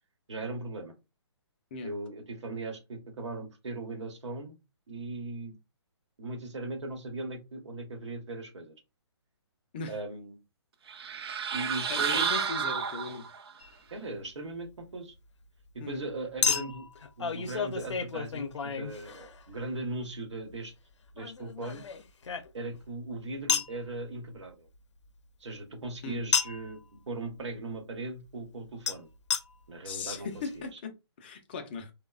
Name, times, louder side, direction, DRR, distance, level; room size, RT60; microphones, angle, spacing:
voice 1, 0.3-0.9 1.8-4.6 4.9-5.6 6.2-8.8 9.9-10.4 11.5-12.5 13.9-15.1 15.7-16.8 17.2-20.7 21.1-21.8 22.5-24.7 25.4-29.1 29.7-30.3 30.5-30.8, right 2 dB, 80° right, 4 dB, 0.9 m, -38 dB
sound 1, 10.9-13.5, right 7 dB, 60° right, 0.4 m, -31 dB
voice 2, 11.9-13.3 15.8-16.0 26.0-26.2 29.8-31.9, left 4 dB, 20° left, 7 dB, 0.3 m, -38 dB
Chink clink, 13.6-13.8 16.4-19.6 21.2-22.9 23.5-23.8 26.3-26.7 28.9-29.0 29.3-29.4 30.1-30.2 30.3-30.4, left 6 dB, 85° left, 0.5 m, -31 dB
3.0 x 2.0 x 2.3 m, 0.25 s
hypercardioid pair, 155°, 15 cm